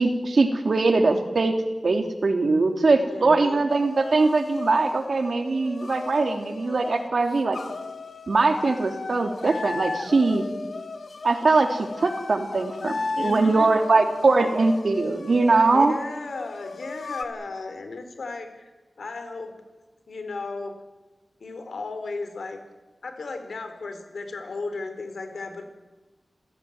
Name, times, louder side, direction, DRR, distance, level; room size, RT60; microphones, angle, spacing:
voice 1, 0.0-1.6 1.8-7.6 8.3-10.4 11.2-15.9, right 3 dB, 65° right, 5 dB, 3.1 m, -21 dB
voice 2, 3.1-3.7 13.2-13.7 15.7-18.7 19.0-19.5 20.1-20.8 21.4-22.6 23.0-25.6, left 3 dB, 85° left, 7 dB, 4.1 m, -35 dB
sound 1, 3.7-17.2, left 3 dB, 70° left, 2.4 m, -35 dB
28.0 x 16.0 x 9.5 m, 1.2 s
wide cardioid pair, 100°, 0 cm